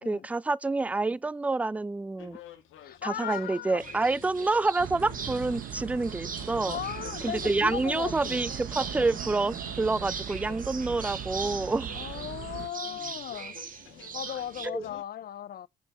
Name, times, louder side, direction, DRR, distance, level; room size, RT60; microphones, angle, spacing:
voice 1, 0.0-2.4 3.0-6.8 7.2-12.0 14.6-14.8, right 3 dB, 5° right, 0.3 m, -28 dB
sound 1, 2.2-15.0, left 10 dB, 85° left, 1.5 m, -50 dB
voice 2, 2.8-3.8 4.4-4.5 6.7-8.4 11.9-13.6 14.1-15.7, left 11 dB, 50° left, 0.5 m, -37 dB
sound 2, 3.8-14.7, right 6 dB, 45° right, 1.5 m, -41 dB
sound 3, 4.8-12.7, right 10 dB, 80° right, 1.4 m, -40 dB
5.5 x 5.0 x 5.6 m
cardioid pair, 90°, 20 cm